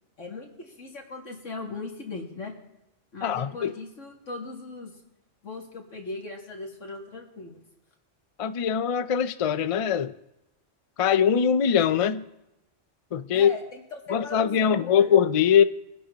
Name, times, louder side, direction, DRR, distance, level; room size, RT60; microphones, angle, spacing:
voice 1, 0.2-2.5 3.1-4.9 5.4-7.6 13.3-15.1, left 3 dB, 85° left, 2.6 m, -39 dB
voice 2, 3.2-3.7 8.4-10.1 11.0-12.2 13.1-13.5 14.1-15.6, left 8 dB, 55° left, 0.3 m, -22 dB
22.5 x 11.0 x 2.9 m
omnidirectional pair, 1.2 m